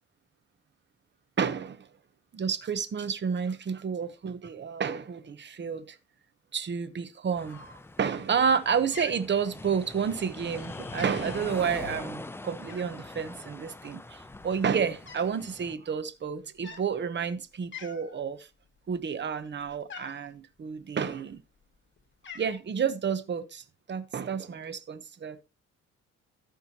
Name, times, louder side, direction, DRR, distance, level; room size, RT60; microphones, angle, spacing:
voice 1, 1.4-1.9 2.3-6.0 6.5-7.6 8.0-18.5 18.9-21.4 22.3-25.4, right 6 dB, 35° right, 1.0 m, -30 dB
sound 1, 7.4-15.8, left 2 dB, 10° left, 0.5 m, -43 dB
Cat, 7.5-8.1 8.5-8.7 8.9-10.0 10.4-10.6 10.8-11.5 12.7-13.1 13.9-14.0 14.2-15.4 15.7-15.9 16.5-16.9 17.3-17.4 17.7-18.2 18.6-20.3 21.1-21.7 22.0-22.6, left 6 dB, 40° left, 1.6 m, -46 dB
sound 2, 10.6-12.2, left 10 dB, 90° left, 1.0 m, -48 dB
14.0 x 5.7 x 2.9 m
cardioid pair, 90°, 30 cm